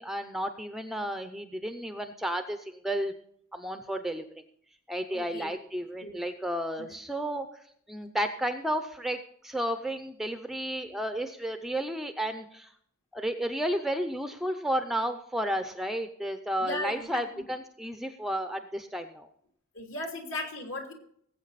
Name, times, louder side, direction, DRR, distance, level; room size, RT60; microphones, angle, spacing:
voice 1, 0.0-3.2 3.5-4.3 4.9-7.5 7.9-12.7 13.1-19.3, right 1 dB, ahead, 7 dB, 0.6 m, -32 dB
voice 2, 5.1-5.5 6.0-6.2 6.8-6.9 16.6-17.4 19.7-20.9, left 2 dB, 60° left, 2 dB, 3.1 m, -37 dB
19.0 x 8.4 x 4.1 m, 0.65 s
head